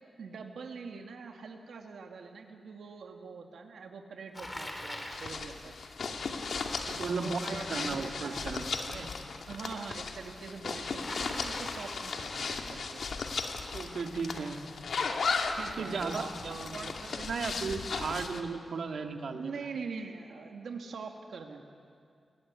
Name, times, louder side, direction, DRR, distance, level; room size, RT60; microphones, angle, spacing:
voice 1, 0.2-5.7 7.0-8.6 9.4-13.2 15.5-17.2 19.3-21.6, right 5 dB, 90° right, 3 dB, 2.3 m, -43 dB
Bicycle, 4.3-5.4 11.0-12.2, left 1 dB, 20° left, 3.2 m, -41 dB
sound 1, 5.1-18.4, left 4 dB, 70° left, 2.2 m, -36 dB
voice 2, 6.9-9.1 13.7-14.6 15.8-19.5, right 4 dB, 70° right, 4 dB, 2.2 m, -36 dB
29.5 x 20.5 x 9.8 m, 2.3 s
wide cardioid pair, 145°, 0 cm